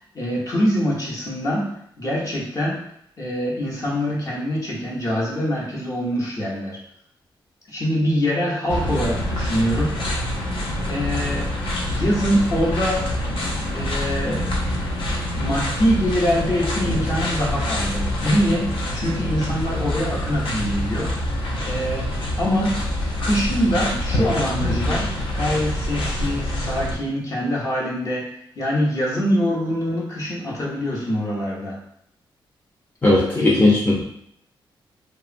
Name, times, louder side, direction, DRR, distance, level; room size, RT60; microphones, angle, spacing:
voice 1, 0.1-2.8 3.2-6.8 7.7-9.9 10.2-10.3 10.9-11.5 11.9-13.0 13.7-14.5 15.4-21.1 21.6-22.1 22.4-22.8 23.2-25.1 25.3-28.3 28.6-31.8 33.4-33.5, equal, 40° left, -4 dB, 0.8 m, -24 dB
sound 1, 8.7-27.0, left 1 dB, 75° left, 0.6 m, -26 dB
voice 2, 33.0-34.1, left 2 dB, 15° left, -5 dB, 0.5 m, -17 dB
2.8 x 2.2 x 2.5 m, 0.71 s
wide cardioid pair, 120°, 9 cm